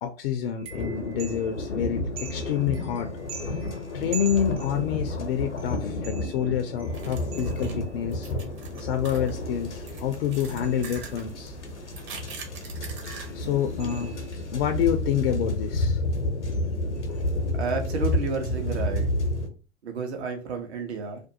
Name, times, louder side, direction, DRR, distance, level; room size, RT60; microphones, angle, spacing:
voice 1, 0.0-3.1 3.9-8.3 8.8-11.6 13.1-14.1 14.5-16.6 17.1-17.2, left 9 dB, 60° left, 6 dB, 0.4 m, -28 dB
sound 1, 0.6-1.7 2.2-5.1 5.6-8.0 8.7-9.1 9.6-11.3 13.1-13.3 13.8-14.6 16.4-16.7 16.9-17.3, right 7 dB, 20° right, 0.4 m, -45 dB
sound 2, 0.7-19.5, left 1 dB, 85° left, 0.7 m, -31 dB
sound 3, 6.9-13.7, right 3 dB, 35° right, 0.8 m, -42 dB
voice 2, 17.6-19.1 19.8-21.3, right 4 dB, 70° right, 5 dB, 0.8 m, -31 dB
2.5 x 2.2 x 2.6 m, 0.35 s
figure-of-eight pair, 95°, 34 cm